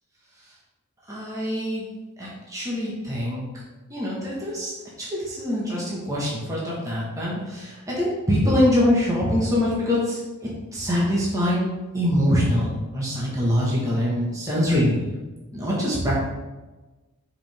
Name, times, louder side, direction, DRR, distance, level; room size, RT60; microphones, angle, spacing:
voice 1, 1.1-1.8 2.2-3.4 3.9-4.7 5.0-11.6 11.9-15.0 15.5-16.2, left 1 dB, 15° right, -6 dB, 1.5 m, -24 dB
5.7 x 5.0 x 3.6 m, 1.2 s
head